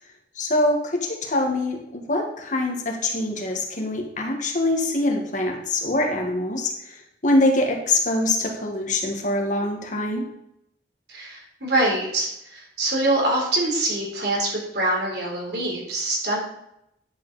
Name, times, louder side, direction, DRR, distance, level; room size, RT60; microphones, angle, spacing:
voice 1, 0.3-10.2, left 2 dB, 45° left, 2 dB, 1.6 m, -24 dB
voice 2, 11.1-16.4, right 2 dB, 65° right, -2 dB, 3.5 m, -24 dB
10.5 x 7.6 x 4.0 m, 0.80 s
head